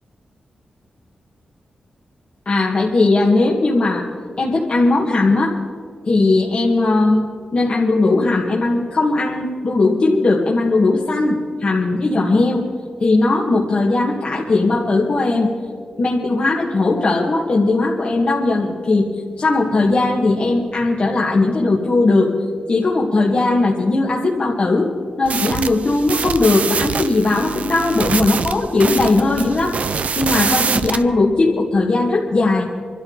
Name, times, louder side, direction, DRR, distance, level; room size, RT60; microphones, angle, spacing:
voice 1, 2.5-4.1 4.4-5.6 6.1-12.7 13.0-15.5 16.0-19.1 19.4-22.3 22.7-24.9 25.2-29.8 30.2-32.7, left 2 dB, 50° left, -3 dB, 1.9 m, -18 dB
sound 1, 25.3-31.0, right 5 dB, 65° right, 0.6 m, -24 dB
25.0 x 13.0 x 4.1 m, 2.1 s
cardioid pair, 70°, 3 cm